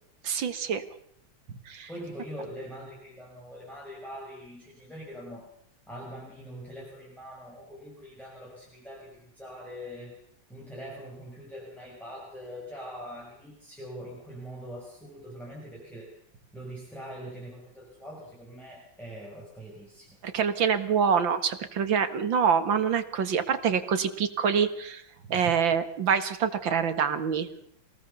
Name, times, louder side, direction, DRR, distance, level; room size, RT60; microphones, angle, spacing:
voice 1, 0.2-0.8 1.7-1.9 20.2-25.0 25.3-27.5, right 7 dB, 70° right, 10 dB, 2.3 m, -26 dB
voice 2, 1.9-5.5 5.9-10.2 10.5-16.1 16.5-20.2, equal, ahead, -4 dB, 5.8 m, -43 dB
26.0 x 18.5 x 6.9 m, 0.71 s
omnidirectional pair, 2.2 m